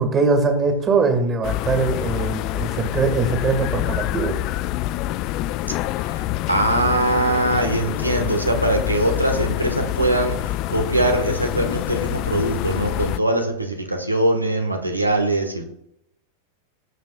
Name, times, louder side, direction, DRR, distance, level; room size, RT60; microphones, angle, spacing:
voice 1, 0.0-4.4, right 4 dB, 25° right, 6 dB, 2.2 m, -21 dB
sound 1, 1.4-13.2, left 15 dB, 40° left, 0.3 m, -26 dB
voice 2, 6.0-15.6, right 1 dB, 85° right, 4 dB, 1.5 m, -22 dB
19.0 x 7.3 x 2.5 m, 0.79 s
figure-of-eight pair, 90°, 0 cm